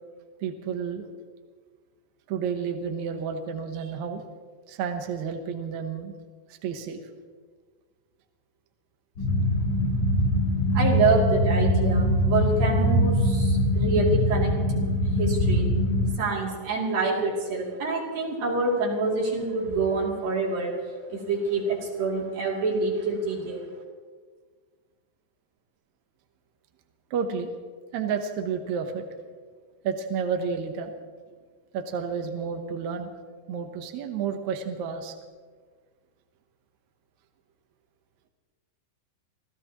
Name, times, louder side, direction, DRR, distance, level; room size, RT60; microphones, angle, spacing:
voice 1, 0.4-1.1 2.3-4.2 4.7-6.2 6.5-7.0 23.4-23.5 27.1-27.5 27.9-29.1 29.8-30.9 31.7-33.1 33.5-35.1, right 6 dB, 65° right, 5 dB, 2.1 m, -31 dB
sound 1, 9.2-16.1, left 1 dB, 40° left, 2.2 m, -23 dB
voice 2, 10.7-14.5 15.2-15.7 16.2-20.7 21.1-23.7, right 3 dB, 85° right, -3 dB, 4.6 m, -26 dB
26.5 x 15.0 x 3.0 m, 1.5 s
omnidirectional pair, 4.0 m